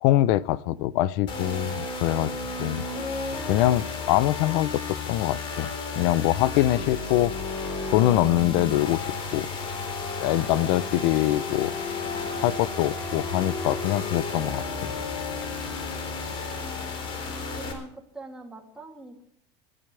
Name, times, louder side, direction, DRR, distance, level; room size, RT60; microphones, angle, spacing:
voice 1, 0.0-2.3 2.6-2.8 3.5-5.7 6.0-7.3 7.9-9.1 9.3-9.5 10.2-12.0 12.4-14.9, left 14 dB, 60° left, 0.7 m, -24 dB
sound 1, 1.3-17.7, left 4 dB, 35° left, 4.3 m, -32 dB
voice 2, 17.6-19.3, right 2 dB, 5° right, 2.8 m, -44 dB
29.0 x 12.5 x 3.4 m
supercardioid pair, 155°, 14 cm